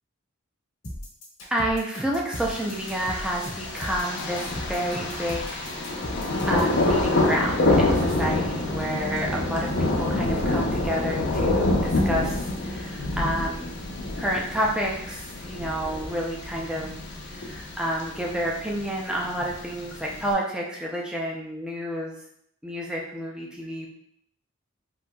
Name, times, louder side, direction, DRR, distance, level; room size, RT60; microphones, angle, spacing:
sound 1, 0.8-6.8, equal, 80° left, 1.1 m, -37 dB
voice 1, 1.5-5.7 6.5-13.8 14.2-16.9 17.3-22.2 22.6-23.9, equal, 5° right, -2 dB, 0.5 m, -29 dB
Thunder, 2.3-20.3, left 2 dB, 60° left, 0.6 m, -27 dB
4.0 x 2.7 x 2.3 m, 0.71 s
head